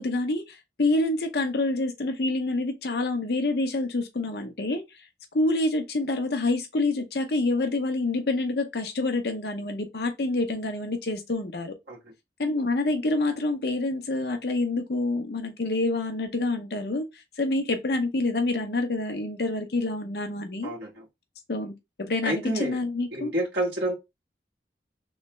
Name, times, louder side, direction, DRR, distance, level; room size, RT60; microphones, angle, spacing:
voice 1, 0.0-4.8 5.3-11.7 12.4-17.1 17.4-20.7 21.5-23.3, left 2 dB, 65° left, 0.7 m, -27 dB
voice 2, 20.6-21.0 22.2-22.8 23.1-24.0, right 1 dB, 75° right, 1.4 m, -28 dB
3.2 x 3.2 x 3.1 m
head